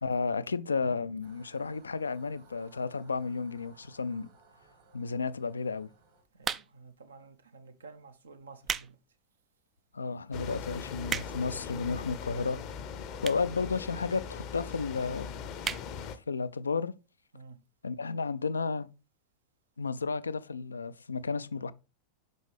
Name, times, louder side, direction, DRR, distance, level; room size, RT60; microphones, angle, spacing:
voice 1, 0.0-4.3 4.9-5.9 9.9-12.6 13.2-15.3 16.3-17.0 17.8-18.9 19.8-21.7, left 4 dB, 75° left, 0.3 m, -32 dB
sound 1, 1.2-6.2, right 4 dB, 55° right, 1.6 m, -61 dB
voice 2, 6.3-9.0 13.4-13.6 17.3-17.6, right 4 dB, 70° right, 0.7 m, -52 dB
sound 2, 6.4-7.0 7.7-7.9 8.4-8.9 9.4-9.5 10.1-10.2 10.4-10.5 10.7-11.6 12.3-12.4 13.2-13.5 13.8-13.9 14.1-14.2 14.5-14.6 14.9-15.1 15.6-15.9 16.3-16.4 16.6-16.7, right 7 dB, 25° right, 0.3 m, -35 dB
sound 3, 10.3-16.2, left 7 dB, 40° left, 0.6 m, -40 dB
5.3 x 5.3 x 3.3 m
figure-of-eight pair, 90°, 0 cm